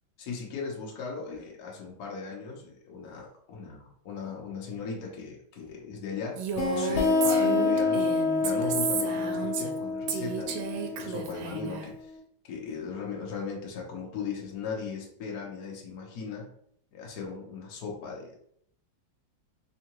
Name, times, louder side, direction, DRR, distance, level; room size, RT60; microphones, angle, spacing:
voice 1, 0.2-8.1 8.4-12.1 12.4-16.5 16.9-18.3, left 5 dB, 60° left, -1 dB, 1.2 m, -38 dB
Female speech woman speaking, 6.4-9.8 10.1-11.9, right 7 dB, 90° right, 1.4 m, -33 dB
sound 1, 6.6-11.9, left 3 dB, 80° left, 1.6 m, -28 dB
3.6 x 3.4 x 3.0 m, 0.68 s
omnidirectional pair, 2.2 m